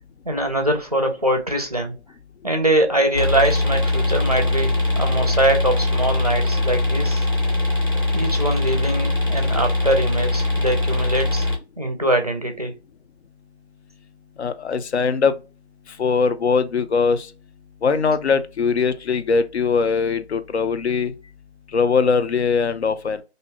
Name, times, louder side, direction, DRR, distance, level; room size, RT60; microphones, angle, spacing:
voice 1, 0.2-2.0 2.4-7.3 8.1-11.5 11.8-12.7, right 1 dB, 35° right, 0.4 m, -23 dB
sound 1, 3.1-11.6, left 2 dB, 20° left, 0.6 m, -21 dB
voice 2, 14.4-15.3 16.0-17.3 17.8-21.1 21.7-23.2, left 5 dB, 75° left, 0.5 m, -21 dB
2.6 x 2.0 x 3.4 m
figure-of-eight pair, 160°, 33 cm